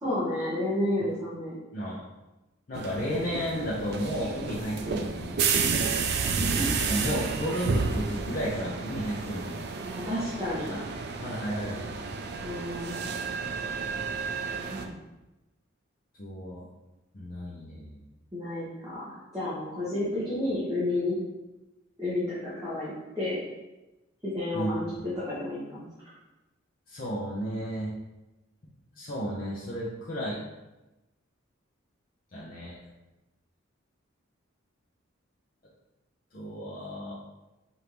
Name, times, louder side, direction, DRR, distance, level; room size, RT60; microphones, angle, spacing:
voice 1, 0.0-1.5 6.4-6.5 9.9-10.7 12.4-13.0 14.7-14.9 18.3-21.1 22.0-23.4 24.2-24.8 25.3-25.8, left 1 dB, 15° right, -11 dB, 1.1 m, -31 dB
voice 2, 2.7-5.8 6.9-9.7 10.7-10.9 11.2-12.0 16.2-16.7 17.1-18.0 24.5-25.1 26.9-27.9 29.0-30.4 32.3-32.7 36.3-37.1, equal, 45° left, -8 dB, 0.7 m, -33 dB
sound 1, 2.7-14.8, right 5 dB, 55° right, 0.4 m, -31 dB
5.1 x 2.7 x 3.0 m, 1.0 s
head